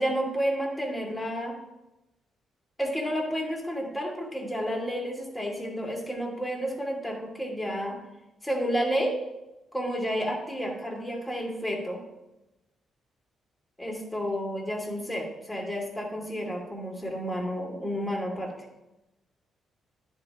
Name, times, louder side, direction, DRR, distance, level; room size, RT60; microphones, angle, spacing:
voice 1, 0.0-1.5 2.8-8.0 8.4-9.2 9.7-12.0 13.8-18.5, equal, 5° left, -1 dB, 2.3 m, -31 dB
10.5 x 3.7 x 4.5 m, 0.97 s
cardioid pair, 70°, 0 cm